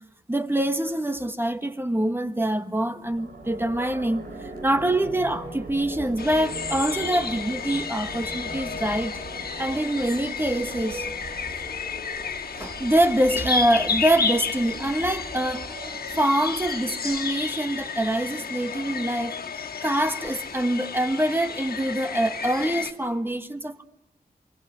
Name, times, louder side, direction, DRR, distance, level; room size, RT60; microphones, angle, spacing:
voice 1, 0.3-4.2 4.6-9.2 9.6-11.1 12.5-19.4 19.8-23.8, right 1 dB, 15° right, 1.4 m, -25 dB
sound 1, 3.0-17.1, right 3 dB, 80° right, 5.6 m, -40 dB
sound 2, 6.2-22.9, left 5 dB, 85° left, 2.1 m, -32 dB
27.5 x 24.0 x 8.7 m
wide cardioid pair, 80°, 15 cm